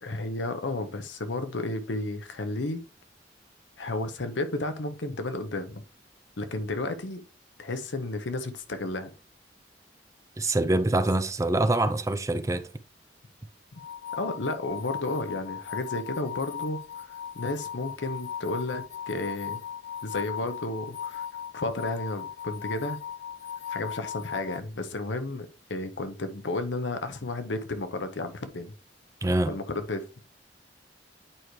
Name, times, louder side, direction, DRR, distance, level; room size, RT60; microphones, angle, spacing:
voice 1, 0.0-2.8 3.8-5.8 6.4-7.2 7.6-9.1 13.7-13.8 14.2-19.6 20.0-21.3 21.5-23.0 23.7-28.7 29.5-30.2, left 2 dB, 80° left, 0.9 m, -32 dB
voice 2, 10.4-12.7 29.2-29.6, right 2 dB, 15° right, 0.4 m, -25 dB
sound 1, 13.8-24.6, left 8 dB, 65° left, 0.4 m, -37 dB
9.0 x 4.6 x 3.1 m
head